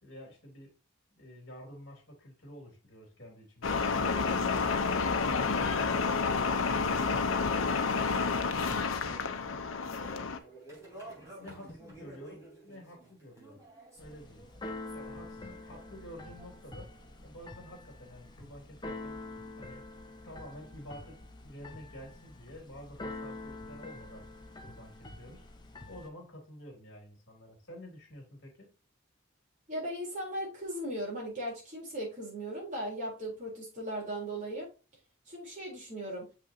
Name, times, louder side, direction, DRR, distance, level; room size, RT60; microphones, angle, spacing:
voice 1, 0.0-0.8 1.1-3.9 4.2-6.6 6.9-9.6 9.9-10.4 11.4-13.6 14.0-14.5 14.9-16.9 17.2-19.2 19.6-19.8 20.2-24.3 24.6-25.4 25.9-28.7, left 1 dB, 50° left, 0 dB, 3.1 m, -49 dB
sound 1, 3.6-10.4, left 4 dB, 80° left, 0.8 m, -29 dB
sound 2, 10.0-19.5, right 1 dB, 15° right, 3.7 m, -53 dB
Keyboard (musical), 14.0-26.1, left 2 dB, 20° left, 0.8 m, -46 dB
voice 2, 29.7-34.7 35.3-36.2, right 1 dB, 40° right, -3 dB, 3.7 m, -37 dB
6.6 x 6.1 x 2.8 m, 0.32 s
head